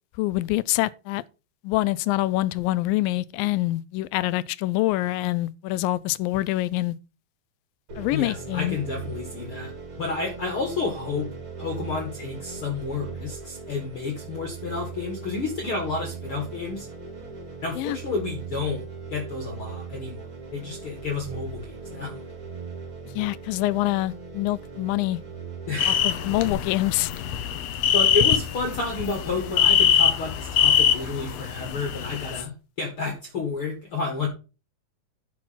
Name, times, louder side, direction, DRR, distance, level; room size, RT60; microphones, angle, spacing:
voice 1, 0.2-1.2 1.6-7.0 8.0-8.8 17.8-18.0 23.2-25.2 25.9-27.1, left 17 dB, 90° left, 2.3 m, -25 dB
sound 1, 7.9-26.5, right 5 dB, 40° right, 4.1 m, -39 dB
voice 2, 8.1-9.7 10.0-11.3 11.6-16.9 17.6-18.8 19.1-20.3 20.5-22.2 25.7-26.0 27.9-32.5 32.8-34.3, left 4 dB, 45° left, 2.2 m, -30 dB
sound 2, 25.8-32.4, left 10 dB, 70° left, 1.6 m, -23 dB
10.5 x 4.6 x 5.8 m
omnidirectional pair, 3.9 m